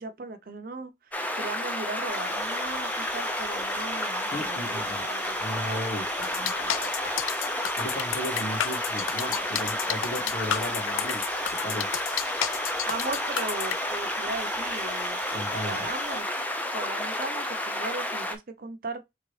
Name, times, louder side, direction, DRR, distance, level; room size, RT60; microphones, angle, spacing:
voice 1, 0.0-5.8 12.9-15.2 15.6-19.1, right 3 dB, 45° right, 0.6 m, -38 dB
sound 1, 1.1-18.4, left 1 dB, 10° left, 0.4 m, -31 dB
sound 2, 2.1-16.2, right 5 dB, 20° right, 0.8 m, -43 dB
voice 2, 4.3-5.1 5.4-6.9 7.8-11.4 11.6-12.0 15.3-15.9, equal, 50° left, 2.1 m, -36 dB
sound 3, 6.2-13.8, left 11 dB, 90° left, 0.3 m, -31 dB
3.8 x 3.3 x 3.2 m
head